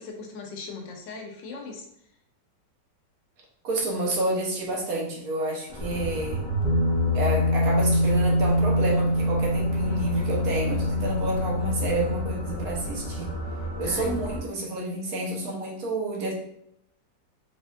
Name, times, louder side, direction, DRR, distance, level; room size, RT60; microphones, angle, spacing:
voice 1, 0.0-1.8 13.8-14.2 14.5-14.8, left 4 dB, 75° left, 2 dB, 1.3 m, -39 dB
voice 2, 3.6-6.4 7.1-13.4 13.8-16.3, right 2 dB, 60° right, -1 dB, 1.2 m, -29 dB
sound 1, 5.7-14.4, right 1 dB, 55° left, 0.6 m, -35 dB
sound 2, 5.8-13.2, left 1 dB, 80° right, 0.4 m, -25 dB
4.2 x 3.5 x 2.4 m, 0.74 s
omnidirectional pair, 2.0 m